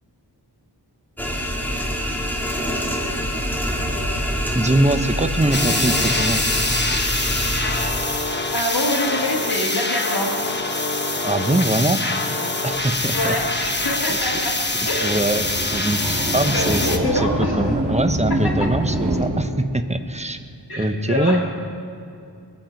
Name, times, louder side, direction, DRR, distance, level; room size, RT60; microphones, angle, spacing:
sound 1, 1.2-7.9, equal, 5° left, 1.7 m, -25 dB
voice 1, 4.5-6.4 11.2-12.0 12.6-13.4 13.7-13.8 14.1-14.3 15.0-20.4 20.8-21.4, right 1 dB, 15° right, 8 dB, 0.7 m, -23 dB
sound 2, 5.5-17.0, left 2 dB, 25° left, 1.1 m, -24 dB
voice 2, 8.5-10.4 12.0-12.2 13.1-14.6 14.9-15.2 16.5-17.7 20.7-21.5, left 1 dB, 55° left, -2 dB, 1.9 m, -25 dB
sound 3, 12.7-19.3, right 1 dB, 60° right, 4.1 m, -26 dB
22.0 x 7.4 x 5.1 m, 2.5 s
wide cardioid pair, 70°, 43 cm